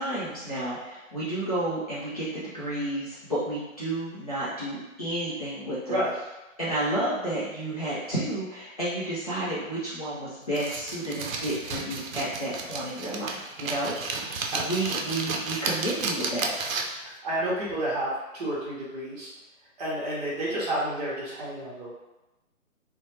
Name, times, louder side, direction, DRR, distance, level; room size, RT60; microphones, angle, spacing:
voice 1, 0.0-6.0 6.6-16.6, right 1 dB, 30° left, -10 dB, 0.4 m, -31 dB
sound 1, 10.6-17.1, right 4 dB, 75° right, 0.6 m, -32 dB
voice 2, 17.0-19.3 19.8-21.9, right 1 dB, 30° right, -7 dB, 0.9 m, -30 dB
2.6 x 2.1 x 3.1 m, 1.0 s
hypercardioid pair, 155°, 41 cm